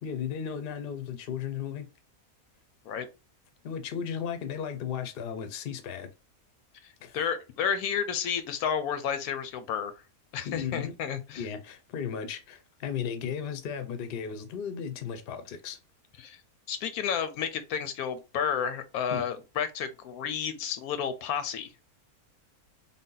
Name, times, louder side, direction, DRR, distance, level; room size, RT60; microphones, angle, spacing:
voice 1, 0.0-1.9 3.6-6.1 7.0-7.2 10.4-10.9 11.4-15.8 19.1-19.2, left 7 dB, 55° left, 0.7 m, -35 dB
voice 2, 7.1-10.0 10.3-11.5 16.2-16.4 16.7-21.7, left 7 dB, 85° left, 1.1 m, -31 dB
3.5 x 2.2 x 3.7 m
omnidirectional pair, 1.6 m